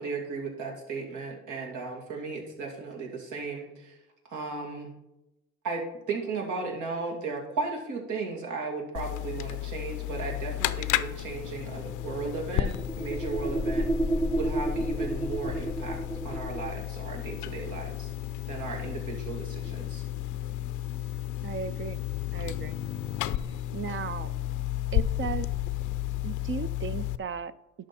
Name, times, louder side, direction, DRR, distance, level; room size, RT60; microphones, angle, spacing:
voice 1, 0.0-4.0 4.3-4.9 5.6-13.9 14.3-16.0 16.2-18.1 18.5-20.0, right 4 dB, 85° right, -1 dB, 2.5 m, -35 dB
sound 1, 9.0-27.2, left 13 dB, 85° left, 0.5 m, -33 dB
sound 2, 11.8-16.8, right 1 dB, 10° left, 0.6 m, -31 dB
voice 2, 21.4-22.0 22.3-22.8 23.7-24.3 24.9-25.5 26.2-27.5, right 7 dB, 45° right, 13 dB, 0.4 m, -35 dB
11.5 x 6.3 x 4.3 m, 0.90 s
cardioid pair, 90°, 30 cm